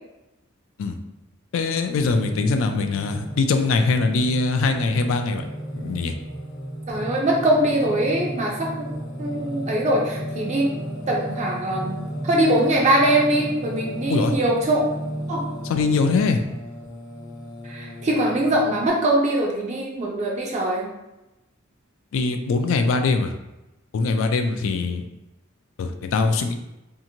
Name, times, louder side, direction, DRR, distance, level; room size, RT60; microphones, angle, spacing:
voice 1, 1.5-6.1 14.1-14.3 15.7-16.4 22.1-23.3 23.9-25.0 25.8-26.6, left 3 dB, 70° left, 7 dB, 0.3 m, -22 dB
Singing, 1.9-18.9, equal, 20° left, 0.6 m, -34 dB
voice 2, 6.9-8.9 9.2-10.7 11.1-12.0 12.2-14.8 15.3-15.4 17.6-20.9 22.9-23.0, right 1 dB, 35° right, -2 dB, 0.4 m, -22 dB
2.8 x 2.5 x 2.7 m, 0.97 s
head